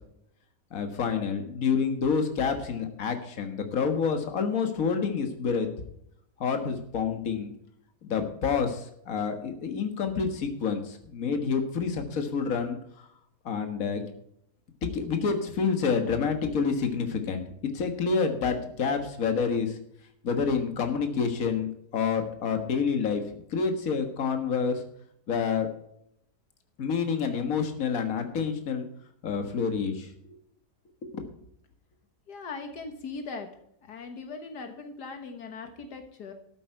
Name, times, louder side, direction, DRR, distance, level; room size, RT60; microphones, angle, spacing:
voice 1, 0.7-5.7 6.4-7.5 8.0-12.8 13.5-14.0 14.8-17.4 17.7-19.8 20.2-24.8 25.3-25.7 26.8-28.9 29.2-30.1 31.1-31.2, left 5 dB, 55° left, 6 dB, 1.9 m, -28 dB
voice 2, 32.3-33.5 33.8-36.3, left 4 dB, 80° left, 6 dB, 1.9 m, -39 dB
13.0 x 8.4 x 4.6 m, 0.73 s
omnidirectional pair, 1.8 m